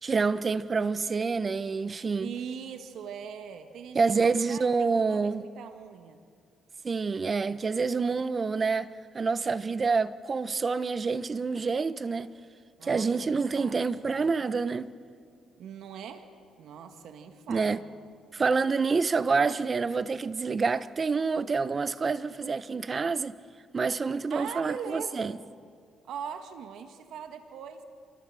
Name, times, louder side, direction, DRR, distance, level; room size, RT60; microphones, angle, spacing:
voice 1, 0.0-2.3 3.9-5.5 6.8-8.9 9.1-12.3 12.8-14.9 17.5-17.8 18.3-23.4 23.7-25.4, right 4 dB, 35° right, 0.9 m, -27 dB
voice 2, 2.2-6.2 12.8-14.1 15.6-16.3 16.6-17.8 24.3-25.4 26.1-27.8, right 7 dB, 75° right, 1.8 m, -41 dB
28.0 x 24.0 x 7.7 m
cardioid pair, 90°, 0 cm